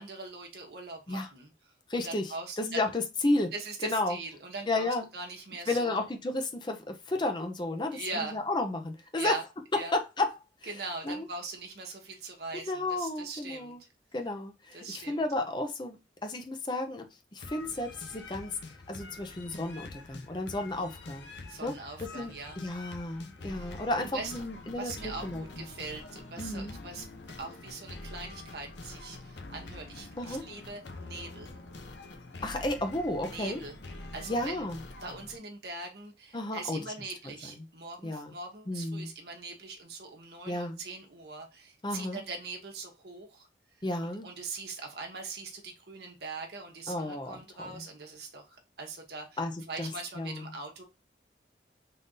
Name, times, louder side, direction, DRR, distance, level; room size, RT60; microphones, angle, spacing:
voice 1, 0.0-1.5 1.9-2.8 3.5-6.1 7.9-8.4 9.1-9.4 9.7-10.0 10.7-13.8 14.7-15.2 21.5-22.6 23.5-24.4 24.8-27.1 27.4-31.5 33.2-33.8 34.1-34.6 35.0-43.5 44.0-49.3 49.7-50.8, right 3 dB, 60° right, 2 dB, 1.1 m, -41 dB
voice 2, 1.9-3.5 3.8-4.2 4.7-5.0 5.7-9.3 9.9-10.3 11.0-11.3 12.5-13.8 14.1-16.0 16.2-17.0 17.3-21.8 22.1-25.6 26.4-26.8 30.2-30.4 32.4-33.6 34.3-34.8 36.3-36.8 37.2-37.7 38.0-38.3 38.7-39.1 40.5-40.8 41.8-42.2 43.8-44.3 46.9-47.8 49.4-49.9 50.2-50.5, left 2 dB, 25° left, 6 dB, 0.6 m, -33 dB
sound 1, 17.4-35.4, left 2 dB, 70° left, 0.7 m, -46 dB
3.8 x 2.6 x 3.7 m, 0.28 s
head